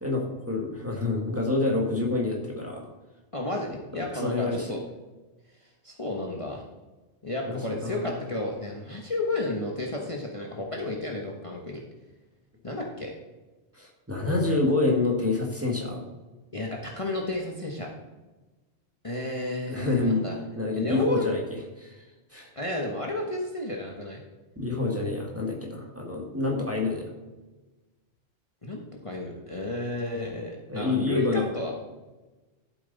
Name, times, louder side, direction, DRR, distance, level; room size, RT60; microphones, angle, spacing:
voice 1, 0.0-2.8 4.0-4.8 7.5-8.1 13.8-16.0 19.7-20.2 20.6-21.4 21.8-21.9 22.3-22.5 24.6-27.1 30.7-31.4, left 2 dB, 10° right, -1 dB, 1.8 m, -27 dB
voice 2, 3.3-4.8 5.8-6.6 7.2-11.8 12.6-13.1 16.5-17.9 19.0-20.4 20.8-21.4 22.6-24.2 28.6-31.7, left 2 dB, 30° left, -1 dB, 1.3 m, -32 dB
12.5 x 7.8 x 4.1 m, 1.2 s
omnidirectional pair, 1.2 m